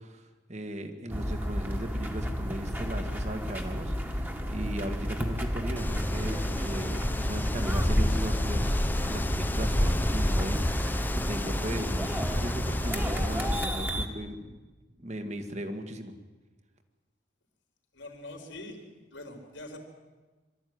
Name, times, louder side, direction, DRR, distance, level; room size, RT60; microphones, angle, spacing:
voice 1, 0.0-14.6 15.0-16.1, right 1 dB, 40° right, 7 dB, 1.9 m, -37 dB
sound 1, 1.1-14.1, equal, 10° right, 1.8 m, -32 dB
Wind, 5.8-13.6, left 1 dB, 10° left, 0.8 m, -29 dB
voice 2, 17.9-18.8 19.1-19.8, left 2 dB, 90° left, 3 dB, 4.1 m, -43 dB
24.5 x 13.5 x 9.7 m, 1.2 s
head